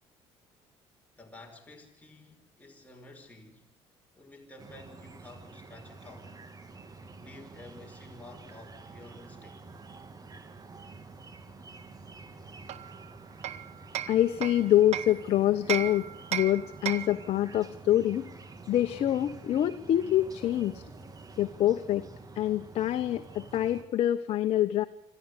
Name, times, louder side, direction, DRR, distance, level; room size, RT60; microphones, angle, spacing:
voice 1, 1.2-3.7 4.1-6.4 7.2-9.7, left 2 dB, 10° left, 5.4 m, -51 dB
sound 1, 4.6-23.8, right 3 dB, 30° right, 2.3 m, -48 dB
Hammer, 12.7-15.2 15.7-17.3, right 11 dB, 65° right, 1.1 m, -35 dB
voice 2, 14.1-16.1 16.3-18.3 18.7-20.8 21.4-22.0 22.3-24.8, left 12 dB, 60° left, 1.0 m, -26 dB
26.5 x 13.5 x 8.3 m
supercardioid pair, 90°, 12 cm